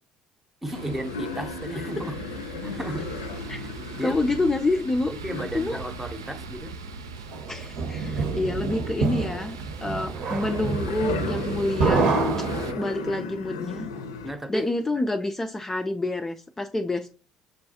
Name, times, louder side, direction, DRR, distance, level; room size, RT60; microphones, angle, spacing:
voice 1, 0.6-2.1 2.6-3.0 3.6-3.7 3.9-4.2 5.2-6.7 14.2-14.7, right 1 dB, 15° right, 0.7 m, -34 dB
sound 1, 0.7-8.4 8.8-14.3 14.8-14.9, left 4 dB, 80° left, 0.5 m, -37 dB
sound 2, 0.7-12.7, right 4 dB, 85° right, 0.3 m, -40 dB
voice 2, 4.0-5.1 5.5-5.8 7.5-12.1 12.8-13.9 14.5-17.1, left 2 dB, 20° left, 0.3 m, -27 dB
sound 3, 7.3-13.2, right 3 dB, 60° right, 0.8 m, -27 dB
6.4 x 2.3 x 2.7 m
figure-of-eight pair, 55°, 2 cm